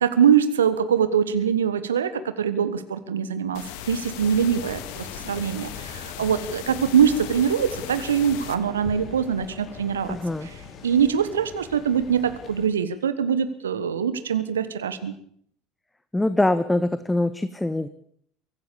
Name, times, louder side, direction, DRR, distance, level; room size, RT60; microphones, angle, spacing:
voice 1, 0.0-10.2 10.8-15.1, right 8 dB, 80° right, 12 dB, 1.3 m, -23 dB
sound 1, 3.5-8.5, left 11 dB, 65° left, 2.0 m, -38 dB
sound 2, 4.2-12.7, left 5 dB, 40° left, 3.9 m, -42 dB
voice 2, 10.1-10.5 16.1-17.9, left 2 dB, 10° left, 12 dB, 1.2 m, -23 dB
24.0 x 16.0 x 7.0 m, 0.65 s
figure-of-eight pair, 65°, 0 cm